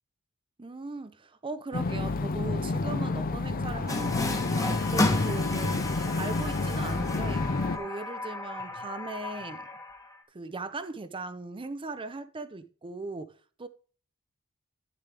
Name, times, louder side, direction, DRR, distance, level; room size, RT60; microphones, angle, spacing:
voice 1, 0.6-7.5 7.7-9.6 10.3-13.7, right 3 dB, 25° right, 0.6 m, -39 dB
sound 1, 1.7-7.8, left 3 dB, 40° left, 0.6 m, -29 dB
Water tap faucet, 3.9-10.2, left 2 dB, 15° left, 1.2 m, -33 dB
9.9 x 6.8 x 3.3 m
head